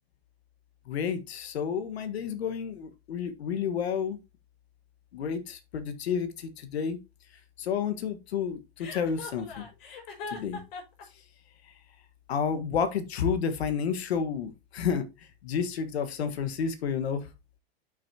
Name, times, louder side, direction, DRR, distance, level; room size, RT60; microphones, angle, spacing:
voice 1, 0.9-4.2 5.1-7.0 7.6-9.6 10.3-10.6 12.3-15.0 15.4-17.2, left 7 dB, 90° left, 1.5 m, -30 dB
Chuckle chortle, 8.8-11.0, left 4 dB, 60° left, 4.9 m, -40 dB
8.2 x 6.3 x 2.8 m
supercardioid pair, 140°, 31 cm